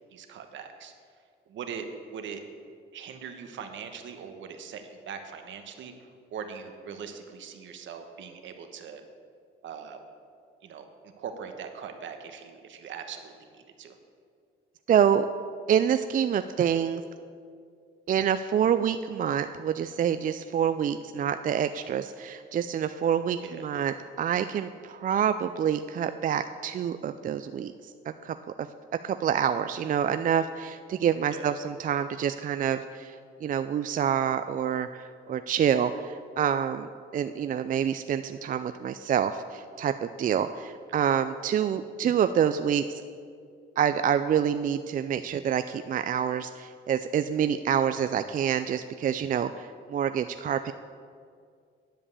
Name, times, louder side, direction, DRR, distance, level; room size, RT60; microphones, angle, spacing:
voice 1, 0.1-0.9 1.5-1.8 2.1-2.4 2.9-5.9 6.3-9.0 9.6-10.0 10.6-14.0 23.4-23.6 31.3-31.5, right 7 dB, 70° right, 6 dB, 1.1 m, -41 dB
voice 2, 14.9-15.2 15.7-17.0 18.1-27.7 28.2-28.7 29.0-43.0 43.8-50.7, right 8 dB, 45° right, 10 dB, 0.4 m, -27 dB
10.0 x 5.3 x 8.2 m, 2.2 s
cardioid pair, 90°, 20 cm